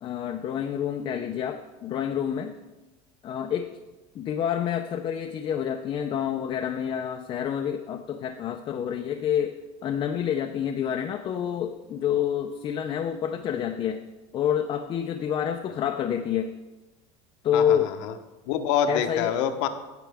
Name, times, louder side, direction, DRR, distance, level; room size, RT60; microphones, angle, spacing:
voice 1, 0.0-2.5 3.2-3.7 4.1-9.5 9.8-14.0 14.3-16.5 17.4-17.9 18.9-19.3, left 9 dB, 30° left, 4 dB, 0.5 m, -28 dB
voice 2, 17.5-18.1 18.5-19.7, left 8 dB, 75° left, 7 dB, 1.0 m, -26 dB
16.0 x 6.0 x 3.5 m, 1.1 s
cardioid pair, 145°, 16 cm